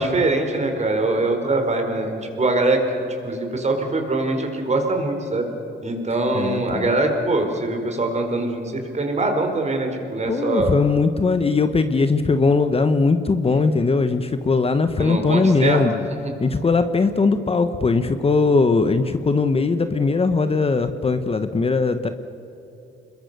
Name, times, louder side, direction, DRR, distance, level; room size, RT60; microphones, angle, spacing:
voice 1, 0.0-5.5 5.8-10.7 15.0-15.8, right 2 dB, 35° right, 4 dB, 4.6 m, -23 dB
voice 2, 6.3-6.9 10.3-16.0 16.4-22.1, left 4 dB, 30° left, 10 dB, 1.2 m, -20 dB
26.5 x 22.0 x 6.9 m, 2.8 s
cardioid pair, 90°, 20 cm